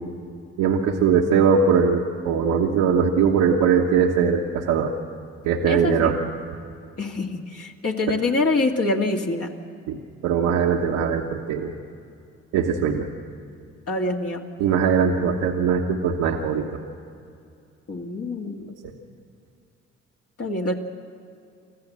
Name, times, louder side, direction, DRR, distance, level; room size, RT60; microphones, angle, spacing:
voice 1, 0.6-4.9 5.4-6.2 8.1-8.2 9.9-10.0 10.2-11.7 12.5-13.1 14.6-16.6, right 6 dB, 90° right, -1 dB, 1.2 m, -20 dB
voice 2, 5.7-6.2 7.0-9.5 13.9-14.4 17.9-18.7 20.4-20.7, left 2 dB, 55° left, 0 dB, 2.2 m, -25 dB
25.0 x 14.5 x 7.5 m, 2.4 s
supercardioid pair, 55°, 29 cm